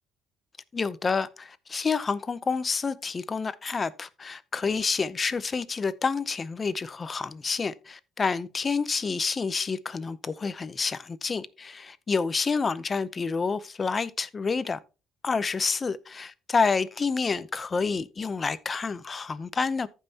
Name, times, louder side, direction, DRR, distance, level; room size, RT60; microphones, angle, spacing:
voice 1, 0.7-14.8 15.2-19.9, left 4 dB, 25° left, 0.6 m, -28 dB
14.5 x 5.6 x 2.9 m
cardioid pair, 125°, 0 cm